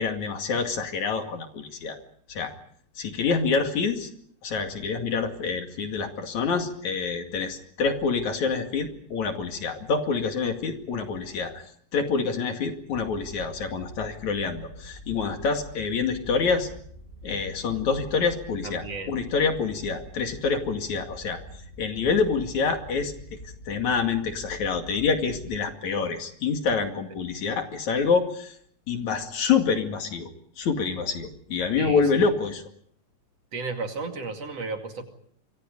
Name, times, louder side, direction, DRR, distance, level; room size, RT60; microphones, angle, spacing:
voice 1, 0.0-2.0 2.3-2.6 3.0-4.1 4.4-16.7 17.2-21.4 21.8-23.1 23.4-28.6 28.9-30.3 30.6-32.6, left 5 dB, 60° left, 5 dB, 3.5 m, -27 dB
sound 1, 12.9-25.6, equal, 20° left, 2.1 m, -45 dB
voice 2, 18.6-19.1 31.8-32.3 33.5-35.1, right 3 dB, 50° right, 4 dB, 3.3 m, -34 dB
27.0 x 25.5 x 5.3 m, 0.62 s
omnidirectional pair, 3.8 m